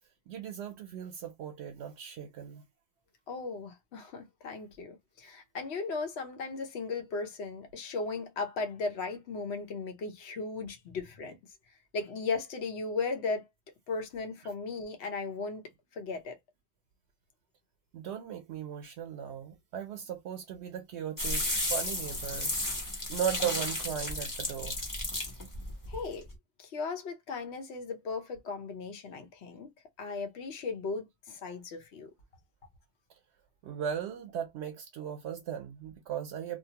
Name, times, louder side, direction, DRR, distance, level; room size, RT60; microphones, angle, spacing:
voice 1, 0.3-2.6 8.2-8.3 12.0-12.1 17.9-22.5 23.1-24.8 33.6-36.6, right 9 dB, 85° right, 0.9 m, -37 dB
voice 2, 3.3-11.3 11.9-13.5 13.9-15.6 15.9-16.4 25.9-26.3 26.6-29.7 30.0-32.1, left 4 dB, 75° left, 1.0 m, -36 dB
sound 1, 21.2-26.3, left 1 dB, 20° left, 0.8 m, -33 dB
2.7 x 2.1 x 2.7 m
omnidirectional pair, 1.1 m